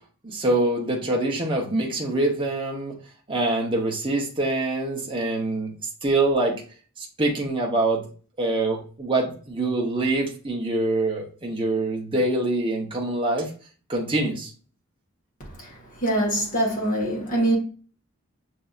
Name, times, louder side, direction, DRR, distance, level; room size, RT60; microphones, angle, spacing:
voice 1, 0.2-2.9 3.3-5.7 6.0-6.5 7.0-8.1 8.4-13.5 13.9-14.5, right 2 dB, 25° right, 0.9 m, -25 dB
voice 2, 16.0-17.6, right 1 dB, 35° left, 1.5 m, -23 dB
6.7 x 2.7 x 2.4 m
head